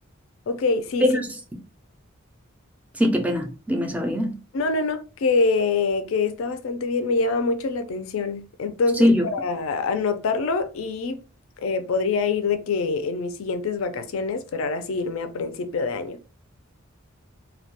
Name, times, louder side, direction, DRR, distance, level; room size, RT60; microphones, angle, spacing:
voice 1, 0.5-1.1 4.5-11.2 11.6-16.2, left 4 dB, 65° left, 0.4 m, -25 dB
voice 2, 1.1-1.6 2.9-4.4 9.0-9.3, equal, 5° right, 0.3 m, -22 dB
2.2 x 2.1 x 2.8 m
head